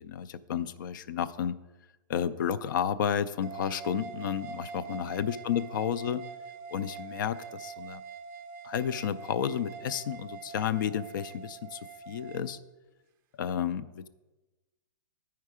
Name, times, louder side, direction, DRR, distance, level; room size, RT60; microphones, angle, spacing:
voice 1, 0.0-1.6 2.1-6.2 6.7-8.0 8.6-11.8 12.1-12.6 13.4-14.1, left 8 dB, 65° left, 15 dB, 0.4 m, -31 dB
sound 1, 3.4-12.5, right 7 dB, 20° right, 0.5 m, -44 dB
10.5 x 4.6 x 4.8 m, 1.1 s
supercardioid pair, 170°, 12 cm